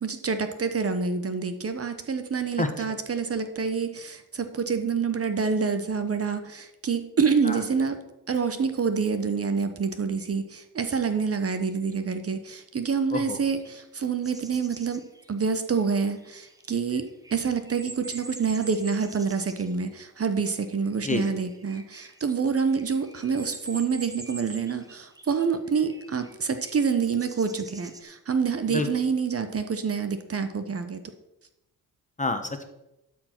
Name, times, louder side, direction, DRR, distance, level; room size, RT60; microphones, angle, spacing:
voice 1, 0.0-8.0 8.3-15.0 15.3-31.0, right 5 dB, 40° right, 9 dB, 1.0 m, -27 dB
sound 1, 13.5-19.8 20.8-28.0, right 2 dB, 10° right, 1.2 m, -45 dB
voice 2, 32.2-32.7, left 2 dB, 20° left, 7 dB, 1.2 m, -28 dB
12.0 x 4.7 x 6.0 m, 0.91 s
cardioid pair, 80°, 38 cm